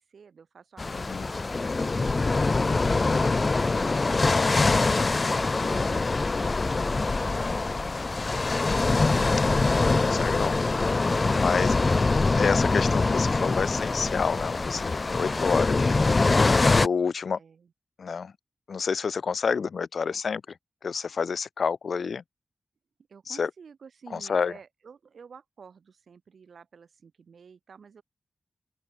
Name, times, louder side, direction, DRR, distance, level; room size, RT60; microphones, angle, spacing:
voice 1, 0.0-1.4 17.4-17.7 23.1-28.0, right 6 dB, 80° right, 6.0 m, -51 dB
sound 1, 0.8-16.9, left 3 dB, 35° left, 0.6 m, -24 dB
voice 2, 0.9-1.3 4.2-4.5 5.7-5.9 9.3-10.9 11.3-11.8 12.4-15.9 16.7-17.4 18.0-18.3 18.7-20.6 20.8-22.2 23.3-23.5 24.1-24.5, left 5 dB, 70° left, 1.0 m, -29 dB
open air
wide cardioid pair, 125°, 0 cm